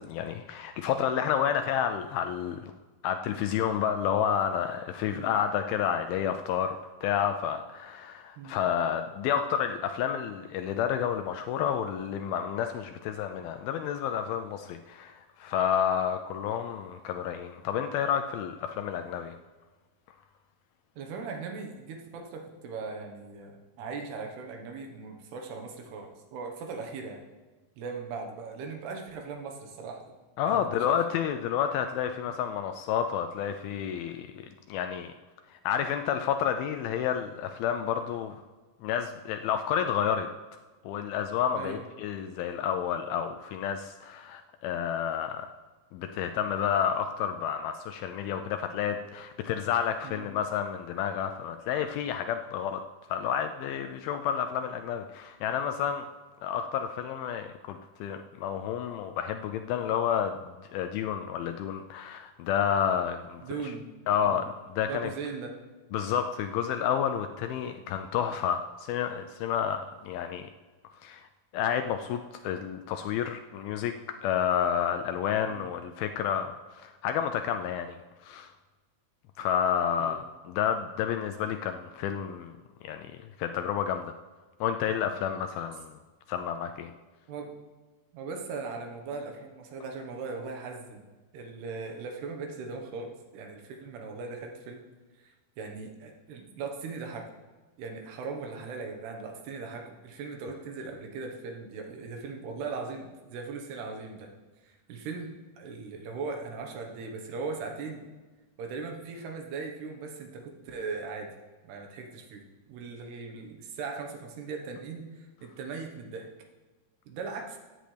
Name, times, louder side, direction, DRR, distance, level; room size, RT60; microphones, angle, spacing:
voice 1, 0.0-2.7 3.0-19.4 30.4-34.3 34.7-35.1 35.6-38.4 38.8-40.3 40.9-45.5 45.9-52.8 53.1-56.1 56.4-60.4 60.7-63.4 64.1-65.1 65.9-70.5 71.0-71.2 71.5-73.9 74.2-78.0 78.2-78.5 79.4-82.5 82.8-84.1 84.6-86.0 86.3-86.9, left 8 dB, 80° left, 7 dB, 2.2 m, -30 dB
voice 2, 21.0-27.2 27.8-30.0 30.5-31.0 32.3-32.4 41.5-41.8 50.0-50.3 63.4-63.9 64.2-64.4 64.9-65.5 75.5-75.7 80.0-80.2 87.3-87.5 88.1-91.0 91.3-94.8 95.2-97.3 97.8-104.3 104.6-108.0 108.6-111.3 111.6-112.4 112.7-116.3 117.1-117.6, right 4 dB, 80° right, 3 dB, 3.3 m, -39 dB
15.5 x 9.0 x 3.3 m, 1.3 s
omnidirectional pair, 4.6 m